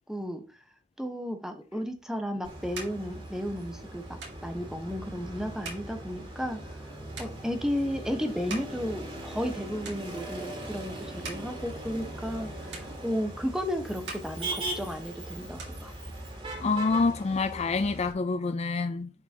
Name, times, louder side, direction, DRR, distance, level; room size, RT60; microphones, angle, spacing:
voice 1, 0.1-0.4 1.0-6.6 7.2-15.9, equal, 5° right, 1.1 m, -33 dB
sound 1, 1.9-9.6 9.8-10.5 11.0-12.4 12.7-13.6 13.9-15.1 15.4-16.5, right 3 dB, 75° right, 2.8 m, -46 dB
Motor vehicle (road), 2.4-18.1, right 1 dB, 35° right, 2.9 m, -40 dB
voice 2, 16.6-19.1, left 3 dB, 40° left, 0.5 m, -27 dB
10.5 x 5.2 x 2.9 m
head